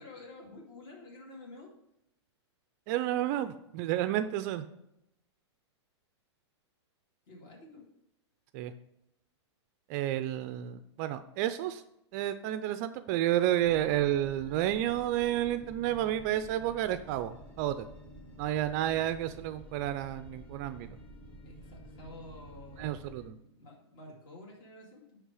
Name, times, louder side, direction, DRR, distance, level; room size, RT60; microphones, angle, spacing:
voice 1, 0.0-1.7 7.3-7.8 21.4-25.2, left 2 dB, 45° left, -2 dB, 2.4 m, -50 dB
voice 2, 2.9-4.7 8.5-8.7 9.9-11.8 12.1-17.8 18.4-21.0 22.8-23.4, right 12 dB, 35° right, 11 dB, 0.4 m, -31 dB
sound 1, 13.6-23.3, right 1 dB, 10° left, 1.0 m, -50 dB
9.3 x 3.3 x 4.8 m, 0.81 s
hypercardioid pair, 145°, 15 cm